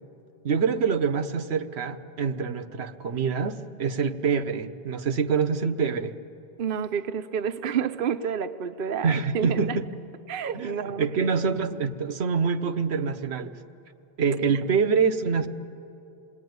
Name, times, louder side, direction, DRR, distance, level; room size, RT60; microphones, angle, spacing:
voice 1, 0.4-6.1 9.0-9.9 10.5-13.6 14.2-15.5, right 5 dB, 85° right, 10 dB, 1.2 m, -26 dB
voice 2, 6.6-9.8 10.3-11.1 14.5-14.6, right 7 dB, 60° right, 9 dB, 0.9 m, -29 dB
27.5 x 20.5 x 9.4 m, 2.7 s
omnidirectional pair, 1.1 m